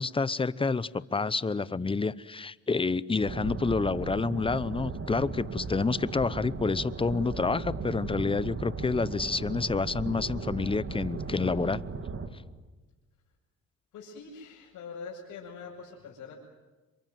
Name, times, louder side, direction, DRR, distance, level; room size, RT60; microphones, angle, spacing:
voice 1, 0.0-11.8, left 4 dB, 20° left, 18 dB, 0.8 m, -28 dB
sound 1, 3.2-12.3, right 4 dB, 45° right, 3.3 m, -37 dB
voice 2, 13.9-16.3, left 5 dB, 80° left, -5 dB, 6.6 m, -43 dB
27.0 x 23.5 x 9.3 m, 1.2 s
cardioid pair, 90°, 30 cm